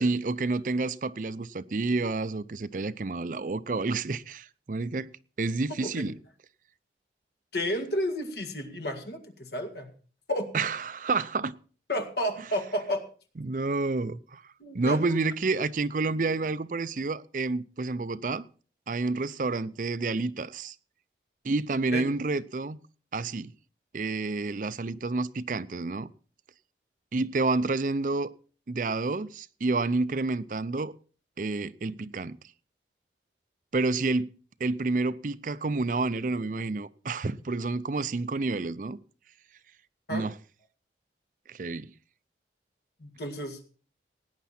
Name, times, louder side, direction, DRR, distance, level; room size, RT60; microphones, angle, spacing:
voice 1, 0.0-5.1 5.4-6.1 10.5-11.5 13.4-14.4 14.7-18.4 18.9-20.7 21.4-22.8 23.1-23.5 23.9-26.1 27.1-28.3 28.7-30.9 31.4-32.4 33.7-34.3 34.6-39.0 40.1-40.3 41.5-41.9, right 3 dB, 45° right, 0.5 m, -29 dB
voice 2, 7.5-9.9 10.3-10.5 11.9-13.0 14.6-15.0 21.9-22.0 40.1-40.3 43.0-43.6, equal, 65° left, 1.9 m, -31 dB
17.0 x 9.4 x 4.3 m
head